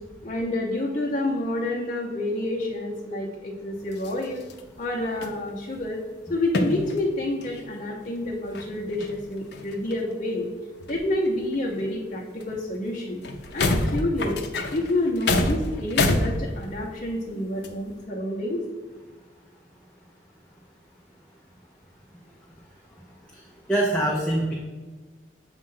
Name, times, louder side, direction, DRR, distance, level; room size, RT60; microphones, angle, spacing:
voice 1, 0.2-4.4 4.8-6.0 6.3-10.5 10.9-13.2 13.5-14.4 14.7-18.6, left 1 dB, 40° left, -6 dB, 0.8 m, -28 dB
sound 1, 3.9-4.7 5.0-5.8 6.5-7.1 7.4-7.7 8.2-8.3 8.5-10.0 10.8-11.9 12.4-12.5 12.9-13.0 13.2-16.9 17.6-17.7, left 2 dB, 65° left, 0.6 m, -27 dB
voice 2, 23.7-24.5, right 1 dB, 5° left, -3 dB, 0.6 m, -23 dB
7.4 x 2.5 x 5.5 m, 1.3 s
head